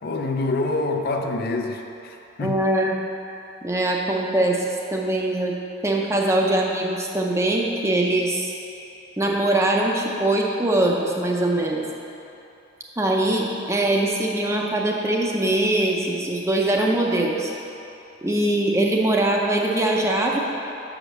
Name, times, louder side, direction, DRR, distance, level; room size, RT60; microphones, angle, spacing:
voice 1, 0.0-2.6, left 2 dB, 50° left, 3 dB, 0.5 m, -26 dB
voice 2, 2.4-2.9 3.6-4.6 4.9-5.5 5.8-8.5 9.2-11.9 13.0-17.5 18.2-20.4, right 1 dB, 15° right, -1 dB, 0.6 m, -22 dB
6.7 x 5.0 x 6.5 m, 2.8 s
head